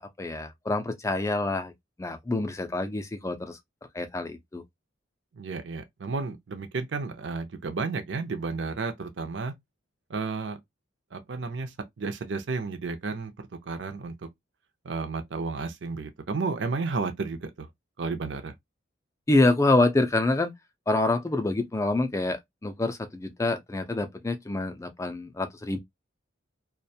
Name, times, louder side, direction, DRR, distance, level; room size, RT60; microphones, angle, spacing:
voice 1, 0.0-1.7 2.0-3.6 3.9-4.6 19.3-20.5 20.9-25.8, left 2 dB, 15° left, 0.3 m, -26 dB
voice 2, 5.3-9.5 10.1-10.6 11.1-13.3 13.7-14.1 14.8-17.7 18.0-18.5, right 4 dB, 65° right, 0.5 m, -32 dB
2.4 x 2.1 x 2.6 m
head